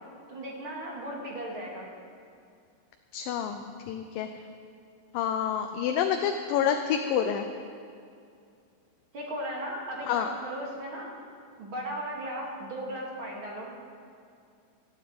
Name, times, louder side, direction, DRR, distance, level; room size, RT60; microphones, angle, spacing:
voice 1, 0.3-1.9 9.1-11.1 11.6-13.7, right 1 dB, 40° right, -2 dB, 2.5 m, -36 dB
voice 2, 3.1-4.3 5.1-7.5 10.1-10.3, left 8 dB, 80° left, 5 dB, 2.4 m, -28 dB
15.0 x 9.8 x 8.7 m, 2.4 s
omnidirectional pair, 4.2 m